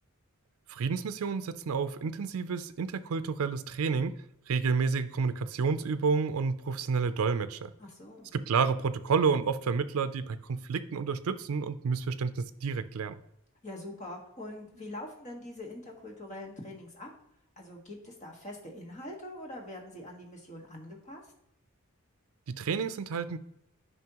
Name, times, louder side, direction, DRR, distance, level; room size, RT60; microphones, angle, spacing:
voice 1, 0.7-4.1 4.5-7.7 8.3-13.2 22.5-23.4, right 5 dB, 75° right, 12 dB, 0.4 m, -30 dB
voice 2, 7.8-8.3 13.6-17.1 17.6-21.2, left 1 dB, 35° left, 0 dB, 1.5 m, -43 dB
9.4 x 5.5 x 2.9 m, 0.78 s
head